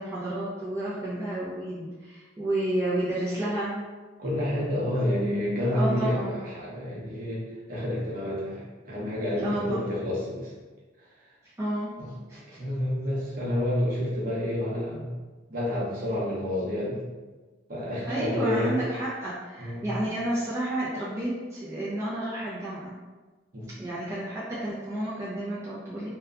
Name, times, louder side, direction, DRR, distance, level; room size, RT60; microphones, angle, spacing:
voice 1, 0.0-3.8 4.9-5.0 5.7-6.4 9.4-9.8 11.6-11.9 12.3-12.6 18.0-22.9 23.8-26.1, right 1 dB, 15° right, -10 dB, 0.4 m, -31 dB
voice 2, 4.2-10.5 12.0-12.1 12.6-15.1 15.5-17.0 17.7-18.8 19.6-19.9 23.5-23.7, left 1 dB, 45° right, -6 dB, 0.7 m, -29 dB
2.7 x 2.2 x 2.4 m, 1.3 s
head